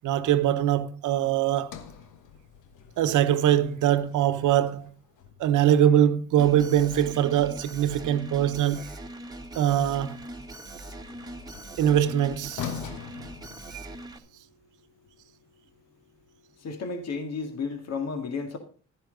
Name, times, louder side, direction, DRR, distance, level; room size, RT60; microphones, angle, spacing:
voice 1, 0.0-1.8 3.0-4.9 5.4-8.9 9.5-10.2 11.8-12.7 13.7-13.9, right 11 dB, 80° right, 1.0 m, -23 dB
Sliding door, 1.6-5.8 9.3-14.2, left 8 dB, 90° left, 1.2 m, -44 dB
Alarm, 6.4-14.2, right 1 dB, 10° right, 1.4 m, -42 dB
voice 2, 16.6-18.6, left 4 dB, 60° left, 2.0 m, -32 dB
11.5 x 10.5 x 3.9 m
cardioid pair, 90°, 30 cm